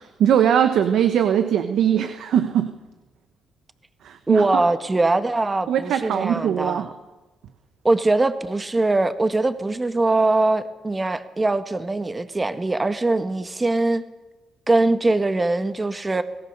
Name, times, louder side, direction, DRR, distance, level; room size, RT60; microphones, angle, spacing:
voice 1, 0.0-2.7 4.0-4.6 5.7-6.9, right 9 dB, 75° right, 9 dB, 1.3 m, -21 dB
voice 2, 4.3-6.9 7.8-14.0 14.7-16.2, right 2 dB, 20° right, 10 dB, 1.5 m, -22 dB
25.5 x 18.0 x 6.8 m, 1.1 s
cardioid pair, 90°, 0 cm